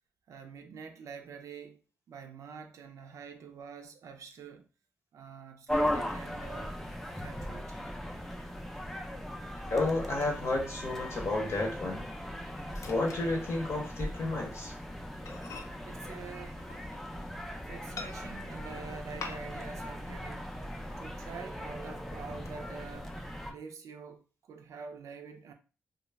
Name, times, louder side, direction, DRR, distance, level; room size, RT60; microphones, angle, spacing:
voice 1, 0.3-1.8 2.1-4.6 5.1-6.8 7.2-7.9 15.9-16.7 17.7-20.5 21.0-23.2 23.5-24.2 24.5-25.5, right 5 dB, 80° right, 0.4 m, -46 dB
sound 1, 5.7-23.5, equal, 5° left, 0.4 m, -38 dB
voice 2, 9.7-12.1 12.9-14.7, left 2 dB, 60° left, 0.7 m, -31 dB
Microwave oven, 11.2-14.1 14.4-14.6 14.9-15.0 15.3-17.3 18.0-18.6 19.2-19.8 20.1-20.2 20.6-21.4 21.8-22.5, left 4 dB, 75° left, 0.4 m, -48 dB
2.3 x 2.0 x 3.3 m
cardioid pair, 100°, 5 cm